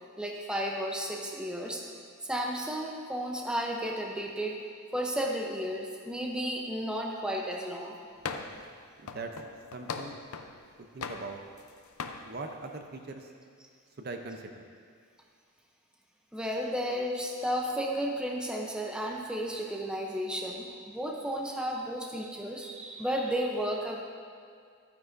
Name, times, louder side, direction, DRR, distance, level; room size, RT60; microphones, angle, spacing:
voice 1, 0.2-1.8 2.2-4.6 4.9-8.0 16.3-24.0, equal, 5° right, 0 dB, 0.6 m, -33 dB
sound 1, 8.2-8.7 9.1-10.6 11.0-11.7 12.0-12.2, left 5 dB, 85° left, 0.6 m, -39 dB
voice 2, 9.0-9.3 9.7-10.1 10.8-11.4 12.2-13.3 14.0-14.7, right 3 dB, 45° right, 4 dB, 0.6 m, -41 dB
12.0 x 9.5 x 2.6 m, 2.2 s
head